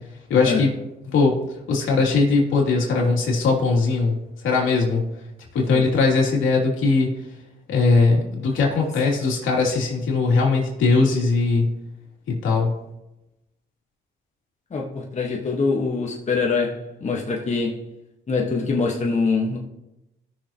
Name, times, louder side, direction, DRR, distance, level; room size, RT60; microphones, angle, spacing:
voice 1, 0.3-0.7 1.0-1.3 1.7-4.2 4.4-5.0 5.5-7.1 7.7-11.7 12.3-12.7, left 4 dB, 80° left, 2.9 m, -20 dB
voice 2, 14.7-17.8 18.3-19.6, left 4 dB, 35° left, 1.5 m, -24 dB
17.5 x 6.5 x 3.0 m
cardioid pair, 90°, 20 cm